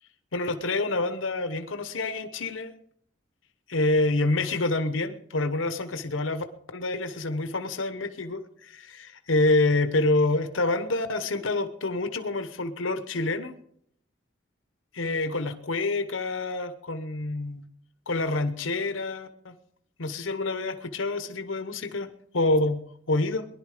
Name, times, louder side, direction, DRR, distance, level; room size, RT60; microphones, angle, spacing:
voice 1, 0.3-2.7 3.7-6.4 6.7-13.5 14.9-17.7 18.1-19.5 20.0-22.1 22.3-23.5, left 2 dB, 85° left, 9 dB, 1.0 m, -27 dB
20.0 x 11.5 x 5.0 m, 0.69 s
head